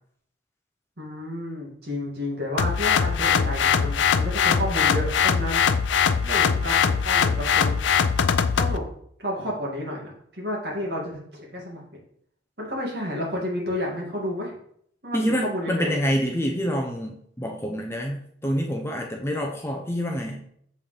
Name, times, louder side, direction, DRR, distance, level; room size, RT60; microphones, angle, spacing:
voice 1, 1.0-5.6 5.9-7.8 8.6-8.8 9.2-11.8 12.6-14.6 15.0-16.1, left 1 dB, 55° right, -3 dB, 2.3 m, -31 dB
sound 1, 2.6-8.8, left 6 dB, 75° left, 0.4 m, -21 dB
voice 2, 15.1-20.5, equal, 15° left, 2 dB, 0.6 m, -27 dB
7.1 x 6.0 x 3.3 m, 0.67 s
head